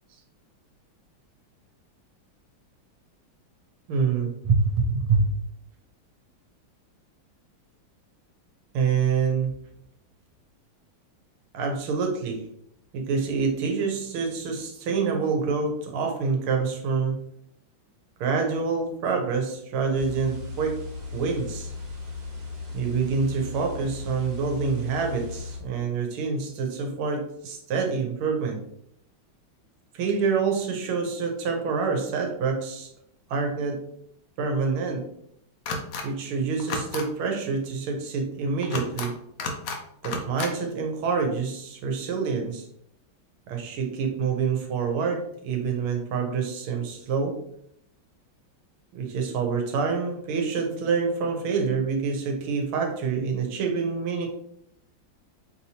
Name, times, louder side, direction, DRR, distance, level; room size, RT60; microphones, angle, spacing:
voice 1, 3.9-5.3 8.7-9.5 11.5-12.4 12.9-17.2 18.2-20.8 21.1-21.7 22.7-28.6 29.9-32.9 33.3-33.8 34.4-35.1 36.0-39.1 40.0-42.7 43.5-47.4 48.9-54.3, right 5 dB, 90° right, 3 dB, 1.7 m, -26 dB
sound 1, 19.9-25.6, left 4 dB, 70° right, 1.7 m, -37 dB
sound 2, 35.7-36.0 36.6-37.0 38.6-39.1 39.4-39.8 40.0-40.5, left 3 dB, 75° left, 0.8 m, -31 dB
5.1 x 2.8 x 2.8 m, 0.71 s
omnidirectional pair, 2.3 m